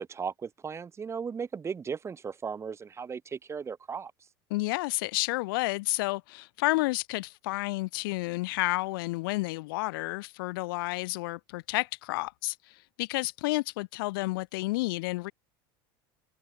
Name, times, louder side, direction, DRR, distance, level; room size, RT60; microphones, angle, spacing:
voice 1, 0.0-4.1, right 6 dB, 25° right, 1.9 m, -36 dB
voice 2, 4.5-15.3, left 22 dB, 85° left, 0.6 m, -31 dB
supercardioid pair, 115°, 11 cm